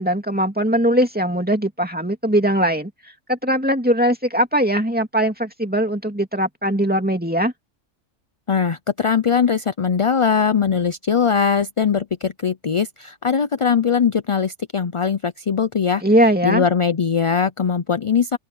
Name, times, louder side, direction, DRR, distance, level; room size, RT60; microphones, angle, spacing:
voice 1, 0.0-2.9 3.3-7.5 16.0-16.6, right 1 dB, 5° right, 2.5 m, -20 dB
voice 2, 8.5-16.0 16.4-18.4, left 6 dB, 40° left, 0.5 m, -20 dB
open air
omnidirectional pair, 1.2 m